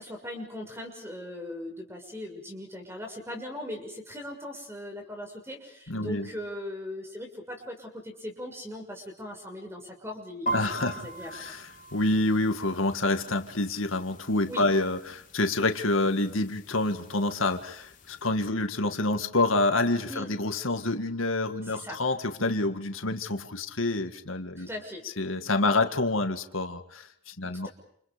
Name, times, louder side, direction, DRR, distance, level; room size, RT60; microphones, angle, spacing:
voice 1, 0.0-10.6 11.0-11.4 14.5-14.7 20.1-20.3 21.7-22.0 24.6-25.0, left 1 dB, 10° right, 3 dB, 6.3 m, -39 dB
voice 2, 5.9-6.3 10.5-24.7 25.2-27.7, left 2 dB, 90° left, 7 dB, 2.1 m, -27 dB
sound 1, 10.5-18.3, right 2 dB, 40° left, 3.6 m, -41 dB
29.0 x 29.0 x 5.2 m, 0.68 s
head